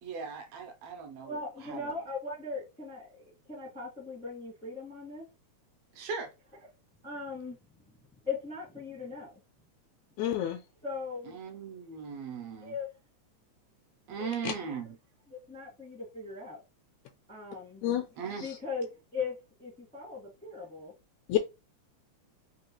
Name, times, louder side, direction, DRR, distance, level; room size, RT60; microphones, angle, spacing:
voice 1, 0.0-1.9 5.9-6.3 11.3-12.7 14.1-15.0 18.2-18.5, right 5 dB, 75° right, 1.6 m, -39 dB
voice 2, 1.2-5.3 7.0-7.6 7.9-8.0 8.2-9.4 10.8-11.4 12.6-12.9 14.1-14.8 15.3-16.6 17.3-17.8 18.3-20.9, left 4 dB, 10° left, 0.5 m, -39 dB
voice 3, 10.2-10.6 14.4-14.5 17.8-18.1 18.4-18.5 21.3-21.4, left 12 dB, 85° left, 1.9 m, -28 dB
4.6 x 2.8 x 3.0 m
omnidirectional pair, 3.4 m